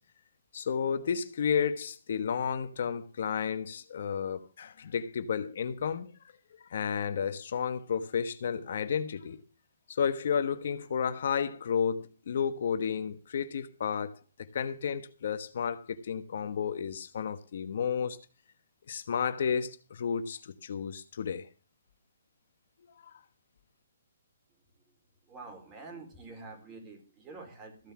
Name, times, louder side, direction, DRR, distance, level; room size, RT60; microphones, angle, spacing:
voice 1, 0.5-6.1 6.7-9.4 9.9-18.2 18.9-21.5 23.1-23.2, left 7 dB, 60° left, 1.2 m, -32 dB
voice 2, 25.3-27.9, right 3 dB, 20° right, 4.1 m, -47 dB
15.0 x 5.6 x 7.4 m
hypercardioid pair, 145°, 0 cm